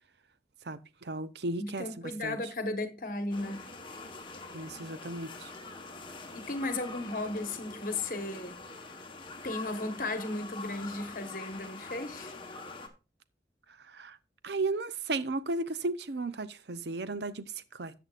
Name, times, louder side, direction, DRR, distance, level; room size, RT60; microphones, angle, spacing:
voice 1, 0.6-2.4 4.5-5.5 13.9-14.2 14.4-17.9, right 2 dB, 70° right, 0.7 m, -35 dB
voice 2, 1.6-3.6 6.3-8.6 9.4-12.3, left 2 dB, 50° left, 1.4 m, -35 dB
sound 1, 3.3-12.9, left 3 dB, 30° left, 1.2 m, -44 dB
13.0 x 7.9 x 2.5 m
head